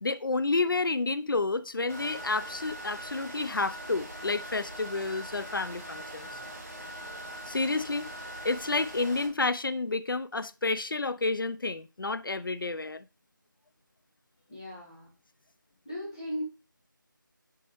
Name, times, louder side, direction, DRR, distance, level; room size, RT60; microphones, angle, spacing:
voice 1, 0.0-6.3 7.5-8.1 8.4-13.1, left 3 dB, 80° left, 0.6 m, -30 dB
sound 1, 1.9-9.3, right 1 dB, 40° right, 1.9 m, -42 dB
voice 2, 14.5-15.1 15.8-16.4, equal, 15° left, 1.4 m, -37 dB
7.1 x 4.4 x 3.1 m
figure-of-eight pair, 175°, 11 cm